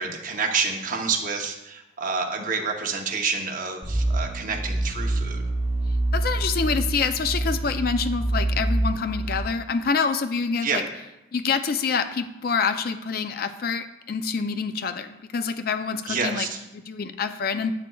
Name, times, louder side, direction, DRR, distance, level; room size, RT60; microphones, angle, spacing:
voice 1, 0.0-5.4 10.6-10.8 16.1-16.6, right 5 dB, 40° right, 3 dB, 0.8 m, -28 dB
sound 1, 3.8-9.4, right 1 dB, 10° right, 1.6 m, -26 dB
voice 2, 6.1-10.8 11.3-16.5 16.9-17.7, left 5 dB, 45° left, 9 dB, 0.4 m, -26 dB
10.5 x 8.1 x 2.3 m, 0.93 s
head